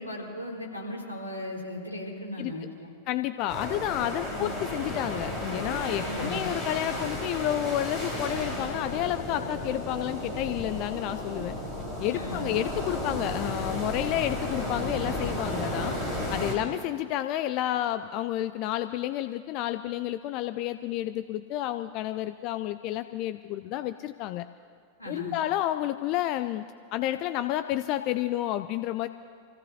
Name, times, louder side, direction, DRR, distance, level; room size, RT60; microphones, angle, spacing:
voice 1, 0.0-2.9 4.3-4.6 6.0-6.5 12.1-12.6 25.0-25.4, left 1 dB, 85° left, -5 dB, 3.7 m, -37 dB
voice 2, 3.1-11.6 12.0-16.0 16.3-24.5 25.1-26.6 26.9-29.1, left 13 dB, 40° left, 11 dB, 0.4 m, -30 dB
sound 1, 3.5-16.5, left 1 dB, 15° left, 4.5 m, -33 dB
26.5 x 16.5 x 2.8 m, 2.1 s
figure-of-eight pair, 90°, 0 cm